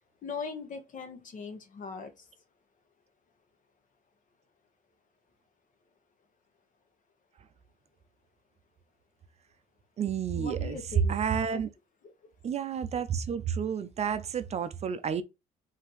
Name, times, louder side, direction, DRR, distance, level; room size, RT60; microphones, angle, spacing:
voice 1, 0.2-2.3 10.3-11.2 11.5-11.6 12.9-13.0, left 5 dB, 50° left, 1.2 m, -40 dB
voice 2, 10.0-10.8 11.1-11.7 12.4-15.2, right 7 dB, 40° right, 0.5 m, -31 dB
5.0 x 2.8 x 3.1 m
cardioid pair, 110°, 17 cm